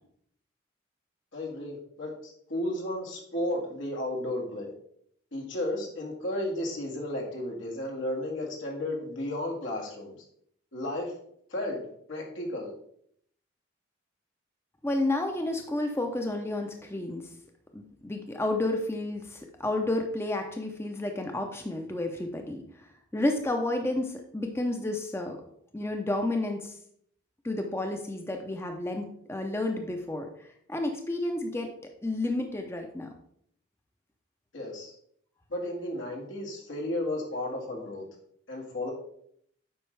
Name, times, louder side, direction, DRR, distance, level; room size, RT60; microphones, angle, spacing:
voice 1, 1.3-4.7 5.3-10.2 10.7-11.1 11.5-11.8 12.1-12.7 34.5-34.9 35.5-38.1 38.5-38.9, left 1 dB, 80° left, -1 dB, 1.8 m, -33 dB
voice 2, 14.8-17.2 17.7-22.6 23.1-25.4 25.7-26.8 27.4-30.3 30.7-31.7 32.0-33.1, left 2 dB, 15° left, 4 dB, 0.6 m, -31 dB
7.8 x 5.2 x 3.3 m, 0.67 s
head